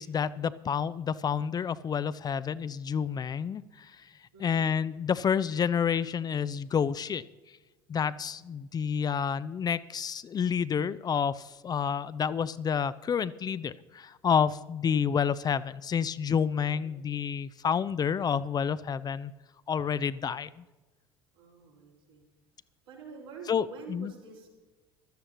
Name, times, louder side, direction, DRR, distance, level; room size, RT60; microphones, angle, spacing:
voice 1, 0.0-3.9 4.4-7.2 7.9-19.3 19.7-20.6 23.5-23.6 23.9-24.1, left 7 dB, 30° left, 15 dB, 0.5 m, -29 dB
voice 2, 4.3-4.7 16.5-17.0 21.3-22.2 22.9-24.5, right 5 dB, 85° right, -5 dB, 4.3 m, -48 dB
16.0 x 12.5 x 3.0 m, 1.2 s
hypercardioid pair, 65°, 13 cm